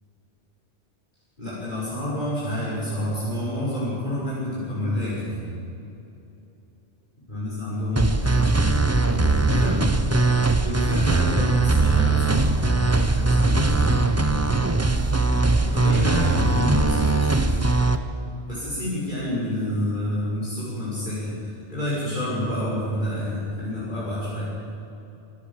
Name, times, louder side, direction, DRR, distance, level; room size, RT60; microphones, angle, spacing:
voice 1, 1.4-5.4 7.3-9.9 10.6-14.3 15.6-17.6 18.5-24.5, left 1 dB, 45° left, -8 dB, 6.5 m, -28 dB
sound 1, 8.0-18.0, right 3 dB, 15° right, 0.8 m, -20 dB
24.0 x 16.0 x 7.5 m, 2.9 s
omnidirectional pair, 1.1 m